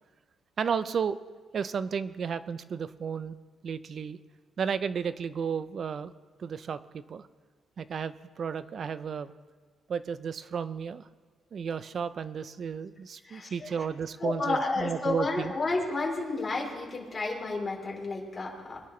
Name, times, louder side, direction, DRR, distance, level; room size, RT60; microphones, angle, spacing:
voice 1, 0.6-1.2 1.5-3.4 3.6-4.2 4.6-6.1 6.4-7.3 7.8-9.3 9.9-11.1 11.5-15.5, right 6 dB, 50° right, 14 dB, 0.6 m, -33 dB
voice 2, 13.3-13.7 14.2-18.8, left 3 dB, 30° left, -2 dB, 3.8 m, -31 dB
22.5 x 11.0 x 3.3 m, 1.5 s
cardioid pair, 90°, 0 cm